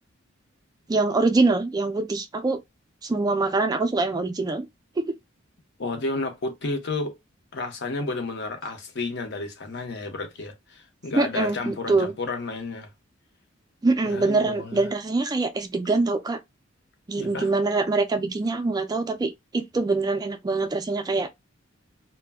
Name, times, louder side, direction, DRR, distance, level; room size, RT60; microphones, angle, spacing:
voice 1, 0.9-2.6 3.0-4.7 5.0-5.1 11.1-12.1 13.8-16.4 17.1-21.3, right 3 dB, 20° right, 0.3 m, -24 dB
voice 2, 5.8-7.2 7.5-12.9 14.1-14.9 17.2-17.5, left 3 dB, 60° left, 0.7 m, -32 dB
2.1 x 2.1 x 3.4 m
head